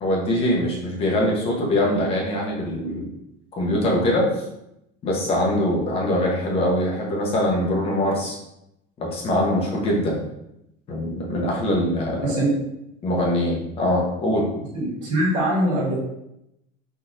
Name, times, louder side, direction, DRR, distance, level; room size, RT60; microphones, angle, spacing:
voice 1, 0.0-3.1 3.6-4.4 5.0-8.4 9.0-10.2 10.9-12.4 13.0-14.5, left 1 dB, 30° left, -2 dB, 0.9 m, -23 dB
voice 2, 12.2-12.5 14.7-16.0, right 1 dB, 45° right, -10 dB, 1.5 m, -22 dB
3.7 x 2.8 x 2.5 m, 0.84 s
cardioid pair, 155°, 20 cm